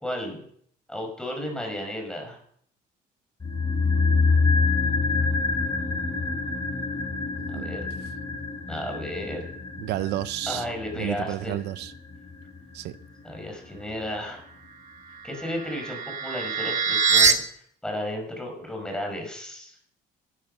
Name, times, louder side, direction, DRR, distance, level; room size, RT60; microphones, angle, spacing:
voice 1, 0.0-0.4 0.9-2.4 7.5-7.9 8.7-9.5 10.5-11.6 13.2-14.4 15.2-19.8, left 1 dB, 5° left, 5.7 m, -33 dB
sound 1, 3.4-13.7 13.9-14.0, left 4 dB, 25° left, 6.4 m, -27 dB
voice 2, 7.4-7.7 9.8-10.7 11.0-11.9 12.7-12.9, right 15 dB, 85° right, 0.7 m, -31 dB
sound 2, 15.1-17.3, right 5 dB, 45° right, 1.5 m, -23 dB
14.5 x 12.5 x 5.4 m
cardioid pair, 110°, 17 cm